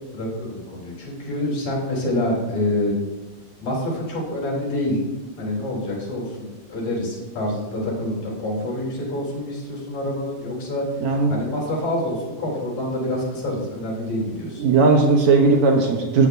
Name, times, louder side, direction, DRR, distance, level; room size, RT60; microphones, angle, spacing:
voice 1, 0.1-2.9 3.6-5.0 5.4-10.8 11.3-14.6, left 1 dB, 65° left, -4 dB, 4.9 m, -27 dB
voice 2, 11.0-11.3 14.6-16.3, right 4 dB, 70° right, 2 dB, 2.2 m, -17 dB
14.5 x 8.7 x 2.7 m, 1.1 s
omnidirectional pair, 3.4 m